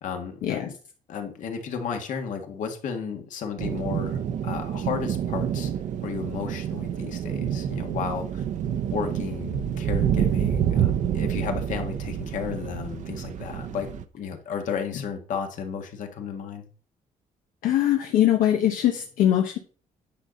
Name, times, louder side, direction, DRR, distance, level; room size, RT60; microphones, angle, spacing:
voice 1, 0.0-0.8 1.1-4.2 4.4-5.7 6.0-8.4 8.9-13.9 14.1-16.6, left 6 dB, 70° left, 5 dB, 1.8 m, -33 dB
sound 1, 3.6-14.0, right 9 dB, 65° right, 0.8 m, -28 dB
voice 2, 17.6-19.6, left 11 dB, 90° left, 3 dB, 1.1 m, -22 dB
9.9 x 4.0 x 6.4 m, 0.41 s
cardioid pair, 125°, 14 cm